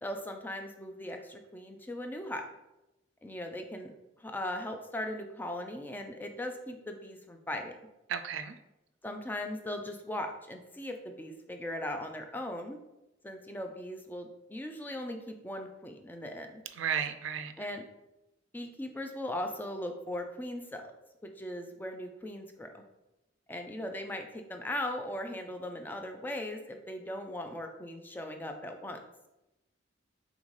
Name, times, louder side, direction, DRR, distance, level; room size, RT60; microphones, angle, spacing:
voice 1, 0.0-2.5 3.2-7.7 9.0-12.8 13.2-16.6 17.6-17.8 18.5-20.9 21.2-22.8 23.5-29.0, left 1 dB, 10° left, 5 dB, 0.3 m, -39 dB
voice 2, 8.1-8.6 16.7-17.7, right 7 dB, 85° right, 9 dB, 0.4 m, -34 dB
3.9 x 3.5 x 3.2 m, 0.96 s
head